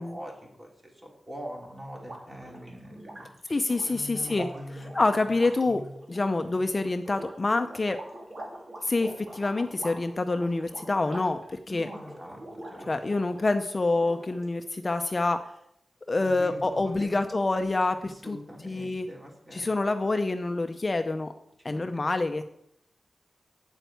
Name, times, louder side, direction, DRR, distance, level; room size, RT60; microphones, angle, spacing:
voice 1, 0.0-3.3 3.8-5.0 5.6-5.9 6.5-6.6 11.7-12.9 16.2-17.1 18.0-19.7 21.6-22.1, equal, 20° right, -1 dB, 3.4 m, -43 dB
sound 1, 1.9-13.6 13.9-14.7, right 1 dB, 55° right, 3.5 m, -45 dB
voice 2, 3.5-4.5 4.9-5.8 6.1-8.0 8.8-11.4 11.7-11.9 12.9-15.4 16.1-18.0 18.3-18.4 18.6-19.1 19.5-21.3 21.6-22.4, left 2 dB, 35° left, 8 dB, 0.6 m, -26 dB
8.9 x 8.1 x 9.3 m, 0.76 s
wide cardioid pair, 135°, 0 cm